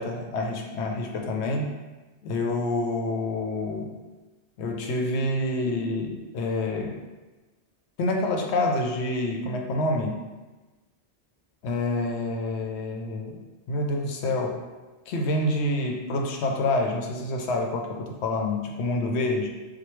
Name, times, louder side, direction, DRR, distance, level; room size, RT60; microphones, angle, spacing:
voice 1, 0.0-1.7 2.2-3.9 4.6-7.0 8.0-10.2 11.6-13.4 13.7-14.6 15.1-19.5, left 2 dB, 70° left, 2 dB, 0.8 m, -27 dB
4.4 x 2.2 x 3.0 m, 1.2 s
omnidirectional pair, 1.2 m